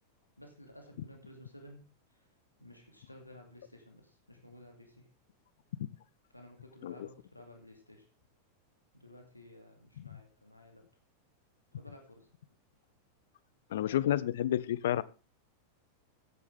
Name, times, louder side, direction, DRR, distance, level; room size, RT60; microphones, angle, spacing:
voice 1, 0.4-2.3 2.6-5.1 6.3-8.1 8.9-10.8 11.7-12.3, left 1 dB, 85° left, 3 dB, 2.5 m, -54 dB
voice 2, 13.7-15.0, left 12 dB, 60° left, 20 dB, 0.6 m, -30 dB
14.0 x 9.9 x 3.5 m, 0.31 s
figure-of-eight pair, 90°, 0 cm